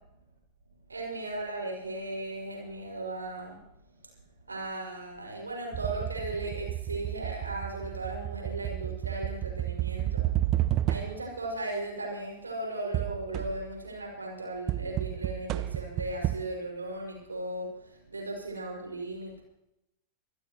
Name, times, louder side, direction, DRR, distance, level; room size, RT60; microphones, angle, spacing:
voice 1, 0.9-3.6 4.5-10.3 10.9-19.4, right 2 dB, 80° right, 0 dB, 6.1 m, -37 dB
sound 1, 5.7-11.4 12.9-13.8 14.7-16.4, right 14 dB, 40° right, 0.5 m, -31 dB
25.5 x 16.0 x 3.1 m, 0.85 s
figure-of-eight pair, 90°, 0 cm